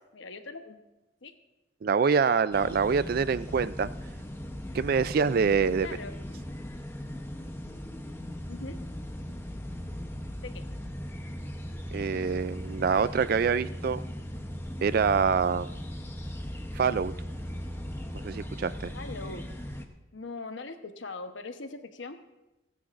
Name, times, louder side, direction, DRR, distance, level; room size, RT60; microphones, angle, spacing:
voice 1, 0.1-0.8 1.2-1.3 5.8-6.2 8.5-8.8 10.4-10.6 18.9-19.4 20.1-22.2, left 3 dB, 70° left, 7 dB, 1.0 m, -41 dB
voice 2, 1.8-3.9 4.7-5.9 11.9-14.0 14.8-15.7 16.8-17.1 18.2-18.9, right 5 dB, 50° right, 16 dB, 0.3 m, -25 dB
sound 1, 2.5-19.8, equal, 10° left, 0.8 m, -38 dB
29.5 x 10.0 x 2.5 m, 1.0 s
head